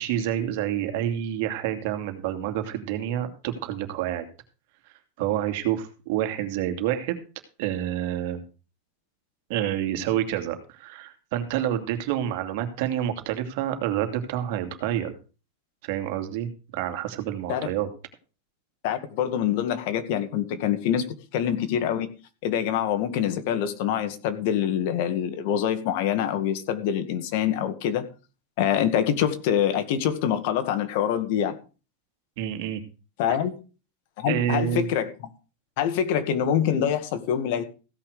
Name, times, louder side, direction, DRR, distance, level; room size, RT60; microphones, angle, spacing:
voice 1, 0.0-4.3 5.2-7.2 7.6-8.4 9.5-15.1 15.8-17.9 32.4-32.8 34.2-34.9, right 11 dB, 55° right, 2.5 m, -28 dB
voice 2, 18.8-22.1 22.4-28.1 28.6-31.6 33.2-33.5 34.2-35.1 35.8-37.6, left 9 dB, 55° left, 2.0 m, -25 dB
16.0 x 5.9 x 6.7 m
supercardioid pair, 145°, 0 cm